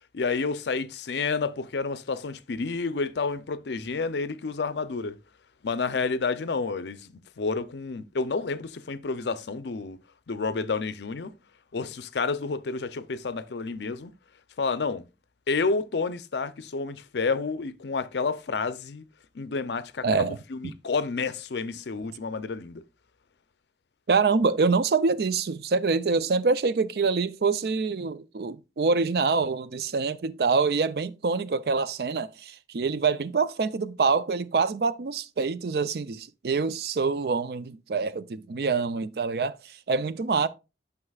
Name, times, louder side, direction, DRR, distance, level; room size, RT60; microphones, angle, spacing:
voice 1, 0.1-5.2 5.6-10.0 10.3-11.3 11.7-14.1 14.6-15.1 15.5-19.0 19.3-20.1 20.5-22.8, left 4 dB, 75° left, 0.5 m, -30 dB
voice 2, 20.0-20.4 20.6-20.7 24.1-40.5, right 4 dB, 60° right, 0.4 m, -25 dB
9.7 x 5.8 x 2.3 m
head